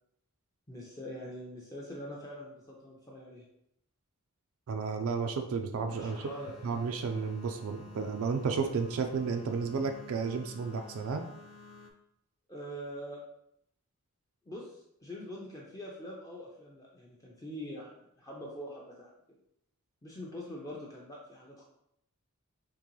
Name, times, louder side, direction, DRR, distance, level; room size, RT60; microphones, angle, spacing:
voice 1, 0.7-3.4 5.8-6.7 12.5-13.2 14.5-19.1 20.0-21.6, equal, 15° left, -4 dB, 0.4 m, -44 dB
voice 2, 4.7-6.2 6.6-11.2, right 5 dB, 70° right, 6 dB, 0.3 m, -32 dB
sound 1, 5.9-11.9, left 4 dB, 70° left, 0.6 m, -52 dB
3.7 x 2.9 x 3.1 m, 0.77 s
head